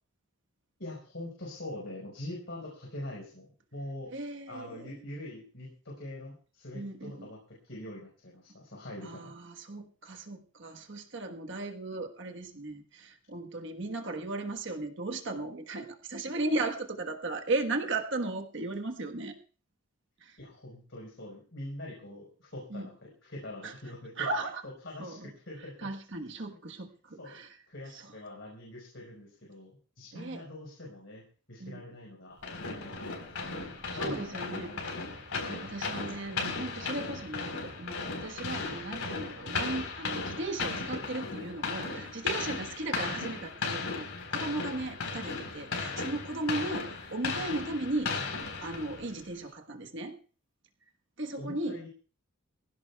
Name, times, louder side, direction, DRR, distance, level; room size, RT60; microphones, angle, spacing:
voice 1, 0.8-4.1 4.5-9.3 20.4-25.9 27.2-27.4 27.7-31.2 31.5-33.6 33.9-34.9 51.4-51.9, left 1 dB, 55° left, -2 dB, 4.5 m, -44 dB
voice 2, 4.1-4.9 6.7-7.3 9.0-19.3 20.2-20.4 22.7-22.9 23.6-23.7 24.2-24.6 25.0-25.3 25.8-27.5 27.9-28.0 30.1-30.4 31.6-31.8 33.9-34.7 35.5-44.0 44.3-48.1 48.6-50.1 51.2-51.8, right 2 dB, 55° right, 4 dB, 1.3 m, -36 dB
sound 1, 32.4-49.2, left 4 dB, 85° left, 4.2 m, -36 dB
23.5 x 16.0 x 2.3 m, 0.40 s
head